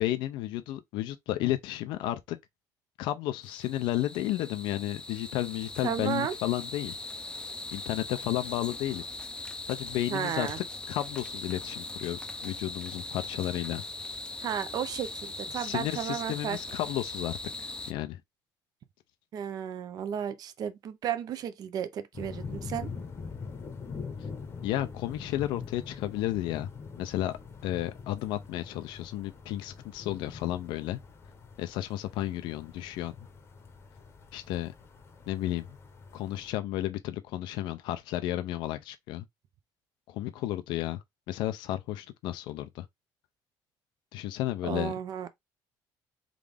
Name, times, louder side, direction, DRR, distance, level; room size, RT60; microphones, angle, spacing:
voice 1, 0.0-2.4 3.0-7.0 7.7-9.0 9.6-13.8 15.5-18.2 24.6-26.7 27.0-31.0 31.6-33.1 34.3-34.7 35.3-35.8 36.1-39.2 40.1-42.9 44.1-44.9, left 14 dB, 85° left, 0.5 m, -33 dB
sound 1, 3.4-17.9, left 2 dB, 10° left, 0.5 m, -40 dB
voice 2, 5.8-6.3 10.1-10.6 14.4-16.6 19.3-22.9 44.6-45.3, right 9 dB, 55° right, 0.6 m, -33 dB
sound 2, 22.1-36.5, left 5 dB, 35° left, 0.8 m, -44 dB
3.7 x 2.4 x 3.3 m
cardioid pair, 115°, 8 cm